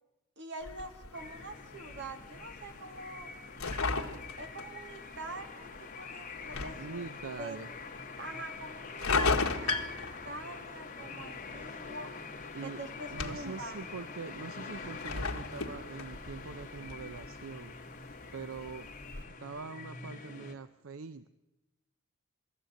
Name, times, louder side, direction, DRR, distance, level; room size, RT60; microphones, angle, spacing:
voice 1, 0.4-3.3 3.8-7.0 7.4-7.6 8.2-12.1 12.6-13.8, right 2 dB, 55° right, 6 dB, 2.0 m, -45 dB
sound 1, 0.6-19.2, left 4 dB, 90° left, 1.8 m, -38 dB
sound 2, 1.1-20.5, left 4 dB, 35° left, 2.2 m, -46 dB
voice 2, 6.6-7.8 12.5-12.8 13.1-17.8 18.3-18.9 19.4-21.3, right 4 dB, 75° right, 12 dB, 0.6 m, -43 dB
21.0 x 14.0 x 9.1 m, 1.0 s
head